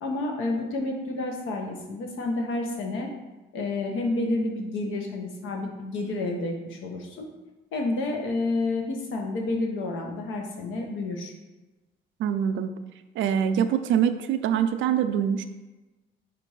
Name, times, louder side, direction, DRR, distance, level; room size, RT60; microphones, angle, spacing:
voice 1, 0.0-3.1 3.5-7.3 7.7-11.3, left 2 dB, 85° left, 2 dB, 0.9 m, -29 dB
voice 2, 12.2-12.7 13.2-15.4, right 8 dB, 75° right, 9 dB, 0.4 m, -24 dB
4.3 x 2.5 x 4.7 m, 1.1 s
cardioid pair, 90°, 20 cm